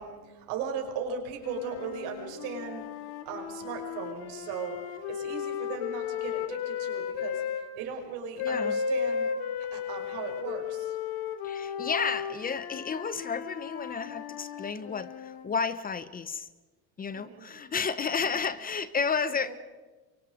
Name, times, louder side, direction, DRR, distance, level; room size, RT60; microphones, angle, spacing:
voice 1, 0.0-2.9 3.3-4.8 5.1-7.4 7.8-9.3 9.7-11.0 17.1-17.6 18.3-18.5 19.2-19.5, right 6 dB, 85° right, 3 dB, 5.7 m, -37 dB
sound 1, 1.4-7.7 8.4-15.5, left 7 dB, 70° left, 2.6 m, -35 dB
voice 2, 8.4-8.8 11.4-16.5 17.0-19.5, left 5 dB, 20° left, 14 dB, 0.9 m, -32 dB
29.5 x 24.0 x 5.1 m, 1.3 s
cardioid pair, 150°, 39 cm